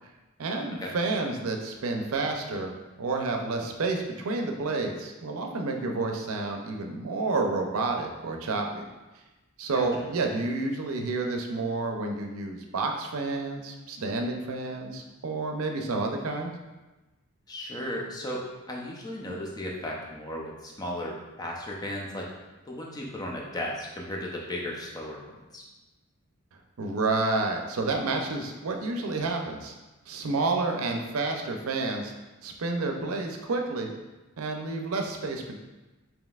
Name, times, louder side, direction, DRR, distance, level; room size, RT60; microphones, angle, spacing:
voice 1, 0.4-2.7 3.0-8.8 9.6-16.5 26.8-29.7 30.1-32.1 32.4-33.9 34.4-35.6, right 3 dB, 85° right, 3 dB, 0.5 m, -30 dB
voice 2, 17.5-22.3 22.6-25.6, left 1 dB, 20° left, -2 dB, 0.5 m, -35 dB
5.2 x 2.9 x 2.4 m, 1.1 s
head